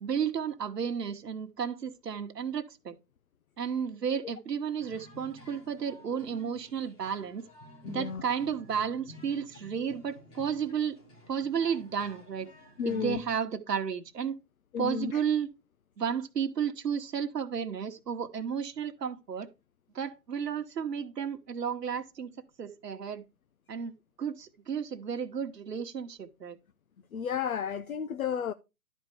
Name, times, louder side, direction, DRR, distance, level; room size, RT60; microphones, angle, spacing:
voice 1, 0.0-3.0 3.6-7.4 7.9-11.0 11.3-12.5 12.8-14.4 14.8-15.5 16.0-19.5 19.9-22.3 22.6-23.2 23.7-23.9 24.2-26.6, right 7 dB, 70° right, 1.3 m, -32 dB
sound 1, 4.8-13.3, left 1 dB, 10° left, 1.7 m, -51 dB
voice 2, 7.8-8.2 12.8-13.2 14.7-15.2 27.1-28.5, left 7 dB, 55° left, 0.6 m, -32 dB
12.0 x 4.4 x 4.8 m
hypercardioid pair, 150°, 50 cm